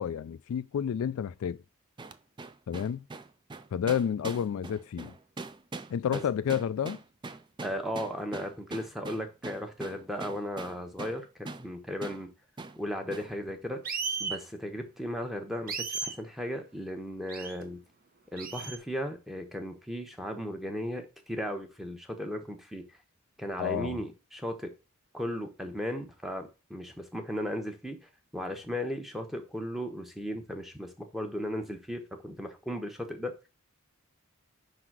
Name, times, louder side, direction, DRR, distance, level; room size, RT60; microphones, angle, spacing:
voice 1, 0.0-1.6 2.7-3.0 3.7-5.1 5.9-7.0 23.6-24.0, left 8 dB, 70° left, 0.3 m, -30 dB
sound 1, 2.0-11.2 11.5-11.7 12.0-12.2 12.6-12.8 13.1-13.3, right 3 dB, 20° right, 0.3 m, -42 dB
voice 2, 7.6-12.3 12.8-13.9 14.2-17.8 18.3-22.8 23.4-24.7 25.1-28.0 28.3-33.3, equal, ahead, 0.9 m, -36 dB
sound 2, 13.8-14.4 15.7-16.2 17.3-17.6 18.4-18.8, right 5 dB, 40° right, 0.8 m, -34 dB
5.5 x 3.9 x 5.9 m
head